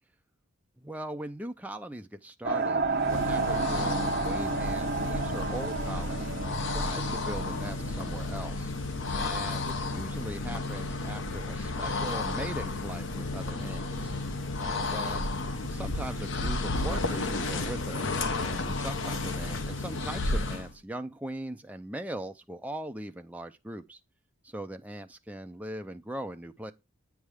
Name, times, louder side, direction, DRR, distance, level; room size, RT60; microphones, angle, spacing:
voice 1, 0.8-8.7 9.1-14.1 14.6-15.3 15.7-24.0 24.4-26.7, right 1 dB, 5° right, 0.5 m, -40 dB
sound 1, 2.4-8.5, right 3 dB, 45° right, 1.1 m, -32 dB
sound 2, 2.9-20.7, left 2 dB, 60° left, 0.9 m, -32 dB
sound 3, 4.1-17.6, right 2 dB, 70° right, 0.9 m, -47 dB
8.5 x 3.5 x 6.4 m
head